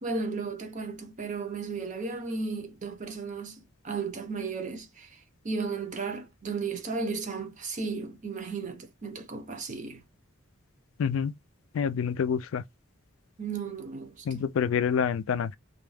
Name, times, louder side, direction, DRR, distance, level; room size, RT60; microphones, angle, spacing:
voice 1, 0.0-10.0 13.4-14.5, right 4 dB, 35° right, 0.6 m, -35 dB
voice 2, 11.0-11.3 11.7-12.6 14.3-15.6, left 7 dB, 65° left, 0.3 m, -27 dB
2.3 x 2.2 x 3.2 m
head